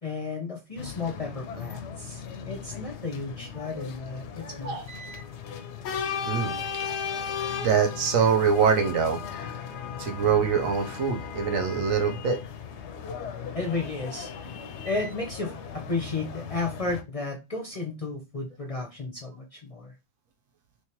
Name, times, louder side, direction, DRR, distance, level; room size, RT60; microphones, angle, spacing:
voice 1, 0.0-4.8 13.5-14.5 14.8-19.9, left 3 dB, 35° left, 1 dB, 0.6 m, -33 dB
sound 1, 0.8-17.0, left 7 dB, 65° left, 0.8 m, -37 dB
voice 2, 4.6-5.2 6.3-6.5 7.6-9.2 10.0-12.4, right 6 dB, 80° right, 5 dB, 1.1 m, -24 dB
3.3 x 3.1 x 2.9 m, 0.25 s
omnidirectional pair, 1.4 m